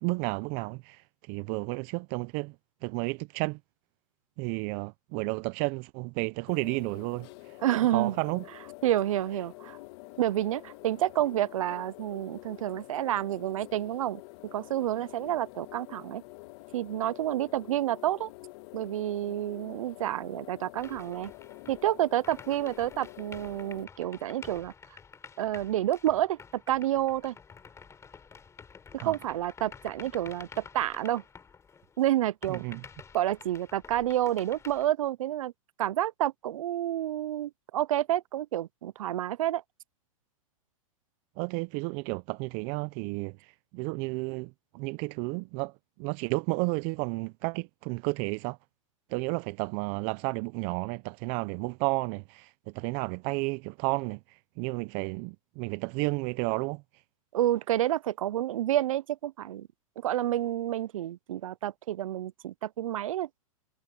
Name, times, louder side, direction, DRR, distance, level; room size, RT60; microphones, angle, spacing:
voice 1, 0.0-2.5 2.8-3.6 4.4-7.6 7.9-8.4 29.0-29.2 32.5-32.8 41.4-45.7 46.0-48.6 49.1-56.8, right 27 dB, 45° right, 0.8 m, -32 dB
sound 1, 6.5-23.8, left 23 dB, 55° left, 1.5 m, -48 dB
voice 2, 7.6-8.1 8.8-9.8 10.2-14.2 14.5-16.2 16.7-18.3 18.7-21.3 21.7-24.7 25.4-27.4 28.9-31.2 32.0-32.6 33.1-35.5 35.8-39.6 57.3-59.7 60.0-63.3, right 13 dB, 75° right, 0.6 m, -29 dB
sound 2, 20.8-32.0 32.4-34.9, left 6 dB, 15° left, 3.6 m, -50 dB
hypercardioid pair, 120°, 17 cm